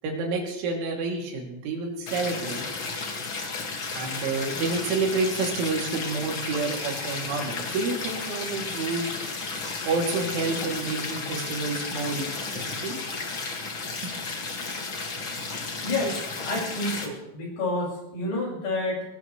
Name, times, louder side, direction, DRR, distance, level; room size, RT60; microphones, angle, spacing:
voice 1, 0.0-2.6 3.9-9.2 9.8-12.2 12.5-13.0 14.0-14.1, right 3 dB, 85° right, 0 dB, 5.2 m, -29 dB
sound 1, 2.1-17.0, left 4 dB, 45° left, 1.6 m, -33 dB
voice 2, 15.8-19.0, left 2 dB, 75° left, -2 dB, 8.0 m, -29 dB
22.5 x 19.5 x 3.2 m, 0.86 s
omnidirectional pair, 5.3 m